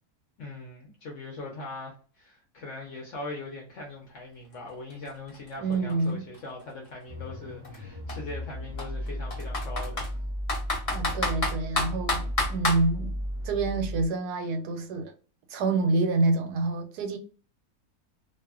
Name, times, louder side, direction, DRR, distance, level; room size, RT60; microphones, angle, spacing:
voice 1, 0.4-10.2, left 2 dB, 60° left, 0.9 m, -41 dB
Computer keyboard, 4.5-4.6 4.9-6.9 7.6-7.8 8.1-8.2 8.8-10.1 10.5-12.8, left 2 dB, 35° left, 0.6 m, -29 dB
voice 2, 5.6-6.3 10.9-13.2 13.4-15.1 15.5-17.2, right 3 dB, 90° right, 1.2 m, -27 dB
sound 1, 7.1-14.1, equal, 40° right, 0.3 m, -35 dB
2.7 x 2.1 x 2.4 m
omnidirectional pair, 1.7 m